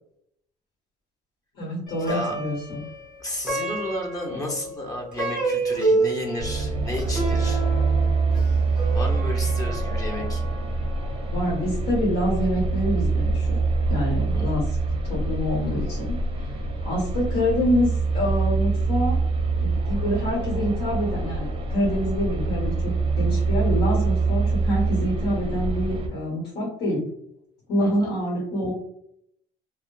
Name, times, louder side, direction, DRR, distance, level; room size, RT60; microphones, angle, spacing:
voice 1, 1.5-2.8 11.3-13.6 13.9-14.7 15.0-16.6 16.8-19.2 19.6-27.1 27.7-28.7, equal, 75° left, -5 dB, 1.1 m, -26 dB
Plucked string instrument, 1.9-11.3, right 2 dB, 5° right, 1.2 m, -30 dB
voice 2, 3.2-7.6 8.9-10.4 14.3-14.6 27.8-28.1, left 1 dB, 20° left, 0 dB, 0.8 m, -33 dB
sound 1, 6.4-26.1, right 3 dB, 35° right, 0.5 m, -25 dB
2.8 x 2.1 x 2.2 m, 0.71 s
cardioid pair, 110°, 17 cm